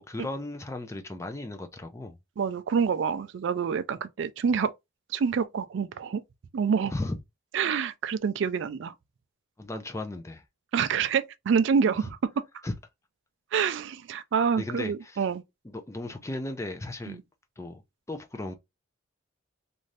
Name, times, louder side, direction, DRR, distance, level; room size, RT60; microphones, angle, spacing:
voice 1, 0.1-2.2 6.8-7.2 9.6-10.4 12.0-12.1 12.6-12.7 14.6-15.2 15.6-17.2 17.6-17.8 18.1-18.5, left 2 dB, 15° left, 0.4 m, -35 dB
voice 2, 2.4-4.7 5.1-6.2 6.5-6.9 7.5-8.9 10.7-12.4 13.5-15.4 17.1-17.2, right 6 dB, 60° right, 0.3 m, -27 dB
2.7 x 2.5 x 3.2 m
head